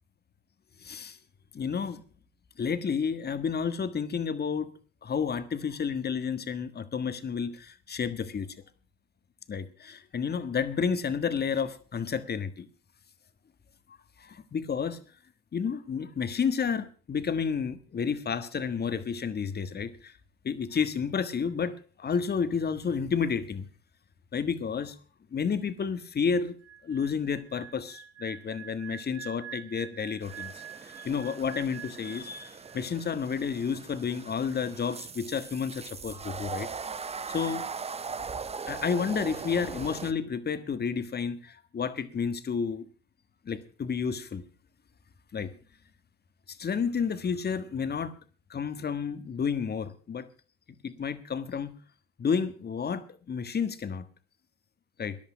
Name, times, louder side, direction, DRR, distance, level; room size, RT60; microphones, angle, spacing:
voice 1, 0.8-1.2 1.5-2.0 2.6-4.7 5.0-8.5 9.5-12.7 14.2-15.0 15.5-20.2 20.4-23.7 24.3-24.9 25.3-26.6 26.8-30.5 30.8-36.7 37.3-37.7 38.7-42.9 43.4-44.4 45.3-45.5 46.5-48.1 48.5-50.3 50.8-51.7 52.2-54.1 55.0-55.2, left 6 dB, 35° left, 12 dB, 1.6 m, -31 dB
sound 1, 26.6-33.0 33.2-33.5, right 9 dB, 55° right, 1.8 m, -46 dB
sound 2, 30.2-40.1, right 5 dB, 20° right, 0.7 m, -40 dB
14.0 x 10.5 x 5.8 m, 0.41 s
hypercardioid pair, 70°, 29 cm